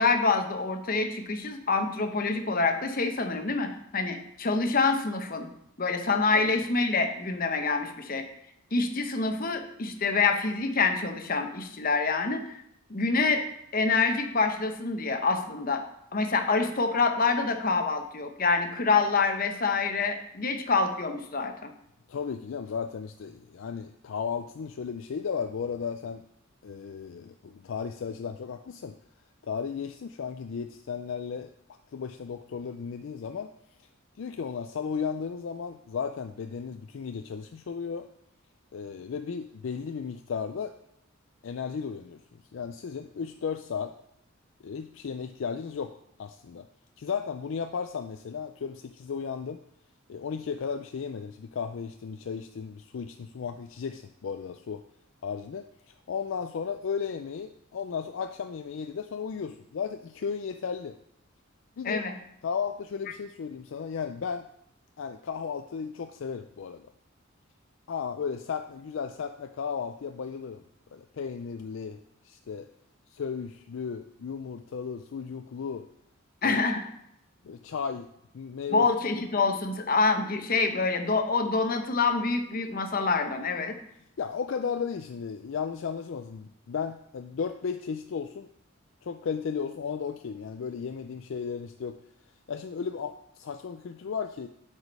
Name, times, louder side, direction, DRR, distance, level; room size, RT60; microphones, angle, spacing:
voice 1, 0.0-5.5 5.8-8.3 8.7-12.4 12.9-13.4 13.7-15.8 16.1-21.7 61.8-62.1 76.4-76.9 78.7-83.7, left 4 dB, 45° left, 6 dB, 0.9 m, -26 dB
voice 2, 22.1-26.2 26.6-29.0 29.4-31.5 31.9-33.5 34.2-38.1 38.7-40.7 41.4-42.2 42.5-43.9 44.6-46.7 47.0-49.6 50.1-54.8 55.2-61.0 61.8-62.0 62.4-64.5 65.0-66.9 67.9-70.6 70.9-72.7 73.1-75.9 76.4-76.6 77.4-79.2 84.2-88.5 89.0-92.0 92.5-94.5, left 6 dB, 65° left, 7 dB, 0.4 m, -35 dB
8.0 x 5.0 x 5.4 m, 0.74 s
head